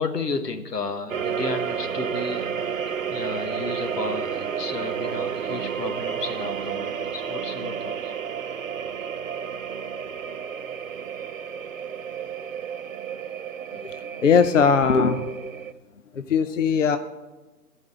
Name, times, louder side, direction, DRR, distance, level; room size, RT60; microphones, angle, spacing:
voice 1, 0.0-2.5 3.1-8.1, left 4 dB, 80° left, 8 dB, 1.5 m, -33 dB
sound 1, 1.1-15.7, right 7 dB, 55° right, 0.6 m, -31 dB
voice 2, 13.8-15.5 16.1-17.0, left 6 dB, 50° left, 8 dB, 0.6 m, -20 dB
13.5 x 5.3 x 8.6 m, 1.2 s
figure-of-eight pair, 155°, 48 cm